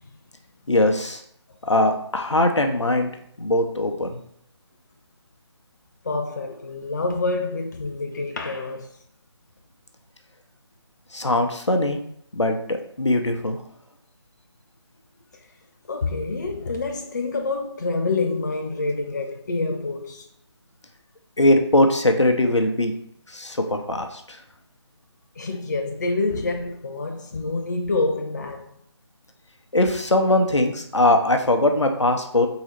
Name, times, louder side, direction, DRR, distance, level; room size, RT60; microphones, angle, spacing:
voice 1, 0.7-1.2 1.6-3.1 3.4-4.2 11.1-12.0 12.3-13.6 21.4-22.9 23.3-24.4 29.7-32.5, left 1 dB, 80° left, 0.8 m, -21 dB
voice 2, 6.0-8.9 15.9-20.3 25.4-28.7, left 3 dB, 40° left, 0.4 m, -27 dB
3.9 x 2.9 x 4.4 m
figure-of-eight pair, 155°, 15 cm